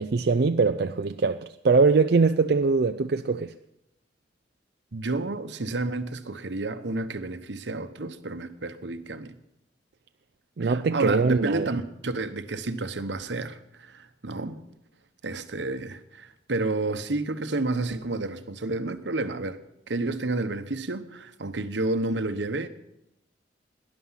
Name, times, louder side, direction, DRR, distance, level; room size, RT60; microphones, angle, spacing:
voice 1, 0.0-3.5 10.6-11.7, right 4 dB, 60° right, 0.5 m, -22 dB
voice 2, 4.9-9.3 10.6-14.6 15.2-19.6 19.9-22.7, right 2 dB, 80° right, 1.0 m, -30 dB
18.5 x 11.0 x 5.7 m
head